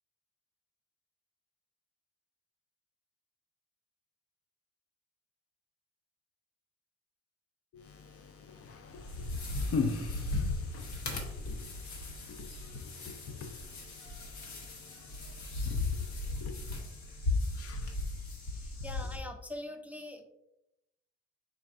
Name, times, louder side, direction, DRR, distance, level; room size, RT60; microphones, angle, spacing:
voice 1, 7.7-16.6 17.5-17.9, left 4 dB, 50° left, 0.6 m, -41 dB
sound 1, 8.9-19.2, left 2 dB, 70° left, 1.2 m, -37 dB
voice 2, 18.4-20.2, left 1 dB, 5° right, 0.4 m, -43 dB
4.4 x 4.4 x 2.5 m
cardioid pair, 90°, 30 cm